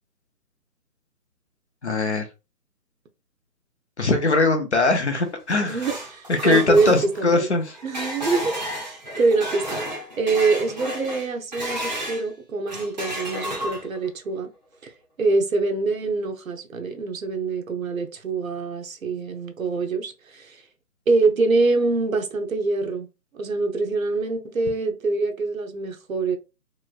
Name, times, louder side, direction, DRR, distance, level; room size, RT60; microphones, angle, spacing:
voice 1, 1.8-2.2 4.0-5.9 6.3-7.8, left 3 dB, 45° left, 0.7 m, -21 dB
Saucepan lids, 5.3-12.3 12.7-14.1, equal, 25° right, 0.7 m, -32 dB
voice 2, 5.5-7.5 7.8-14.5 14.8-14.9 15.2-20.6 21.1-23.1 23.3-26.4, right 3 dB, 55° right, 0.8 m, -25 dB
3.2 x 3.1 x 2.3 m
hypercardioid pair, 165°, 48 cm